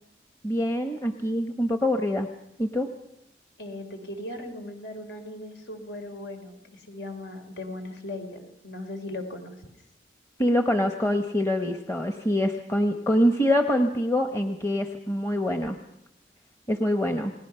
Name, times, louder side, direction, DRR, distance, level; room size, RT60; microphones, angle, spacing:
voice 1, 0.4-2.3 2.6-2.9 10.4-15.8 16.7-17.3, left 1 dB, 15° left, 5 dB, 1.0 m, -25 dB
voice 2, 3.6-9.5, left 1 dB, 75° left, 6 dB, 3.4 m, -38 dB
29.5 x 19.0 x 5.7 m, 0.80 s
head